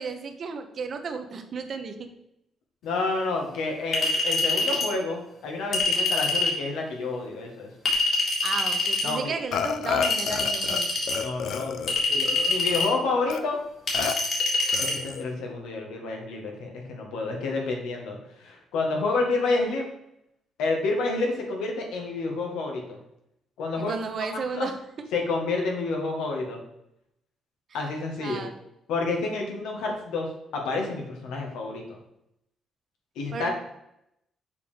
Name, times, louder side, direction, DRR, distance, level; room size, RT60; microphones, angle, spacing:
voice 1, 0.0-2.1 8.4-10.9 23.8-25.1 28.2-28.5 33.3-33.5, right 5 dB, 55° right, 7 dB, 1.0 m, -34 dB
voice 2, 2.8-7.7 9.0-9.3 11.1-13.6 14.8-19.9 20.6-23.0 23.6-24.0 24.3-24.7 25.1-26.6 27.7-28.4 28.9-32.0 33.2-33.5, left 3 dB, 90° left, 1 dB, 1.8 m, -29 dB
Chink clink, 3.9-4.9 5.7-6.6 7.9-9.1 10.0-11.2 11.9-12.9 13.9-14.9, left 2 dB, 55° left, 2.9 m, -25 dB
Burping eructation, 9.5-10.8 11.1-12.9 13.3-13.4 13.9-14.2 14.7-15.3, left 7 dB, 75° left, 0.6 m, -30 dB
6.8 x 4.9 x 5.1 m, 0.80 s
cardioid pair, 90°, 0 cm